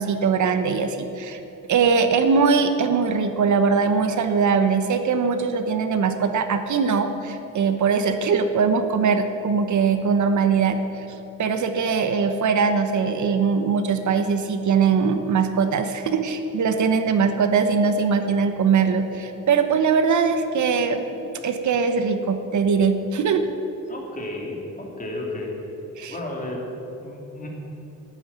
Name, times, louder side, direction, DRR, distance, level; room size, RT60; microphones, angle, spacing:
voice 1, 0.0-1.4 1.7-11.0 11.4-23.4 26.0-26.1, right 5 dB, 65° right, 8 dB, 1.0 m, -21 dB
voice 2, 23.9-25.6 26.1-27.5, left 1 dB, 25° left, -1 dB, 2.8 m, -33 dB
12.5 x 9.6 x 9.3 m, 3.0 s
wide cardioid pair, 165°, 32 cm